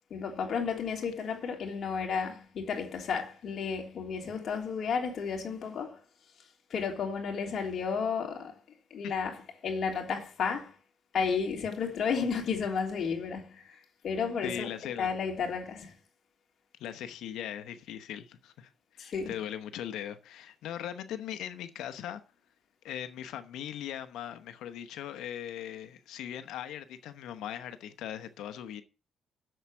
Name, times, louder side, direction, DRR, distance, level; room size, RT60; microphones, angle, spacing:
voice 1, 0.1-6.0 6.7-8.6 8.9-10.8 11.1-14.7 15.0-15.9 19.0-19.3, left 6 dB, 60° left, 3.3 m, -32 dB
voice 2, 14.4-15.1 16.8-22.2 22.8-28.8, left 10 dB, 85° left, 0.9 m, -39 dB
7.9 x 7.2 x 7.7 m
cardioid pair, 90°, 0 cm